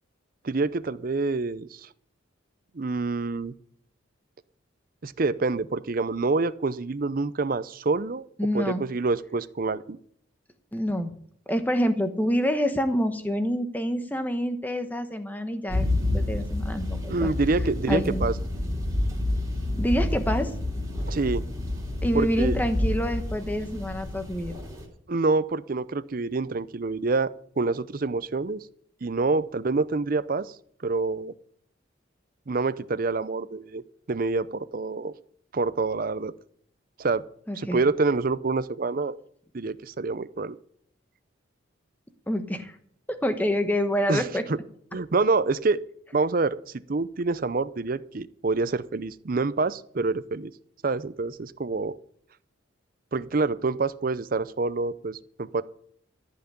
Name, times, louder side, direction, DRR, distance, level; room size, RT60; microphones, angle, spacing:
voice 1, 0.4-1.9 2.7-3.5 5.0-8.2 8.5-10.0 17.1-18.3 21.1-21.4 22.1-22.6 25.1-28.6 29.0-30.5 30.8-31.3 32.5-33.8 34.1-35.1 35.5-36.3 37.0-37.2 37.6-39.2 39.5-40.6 44.1-44.6 44.9-45.8 46.1-46.6 46.9-50.5 50.8-51.9 53.1-55.6, right 3 dB, 45° right, 15 dB, 0.5 m, -27 dB
voice 2, 8.4-8.8 10.7-11.1 11.5-15.9 16.1-17.3 17.9-18.3 19.8-20.5 22.0-24.5 37.5-37.8 42.3-42.8 43.1-44.4, equal, 10° left, 8 dB, 1.1 m, -27 dB
sound 1, 15.7-24.9, left 1 dB, 15° right, 3.5 m, -29 dB
14.0 x 5.8 x 9.9 m, 0.64 s
head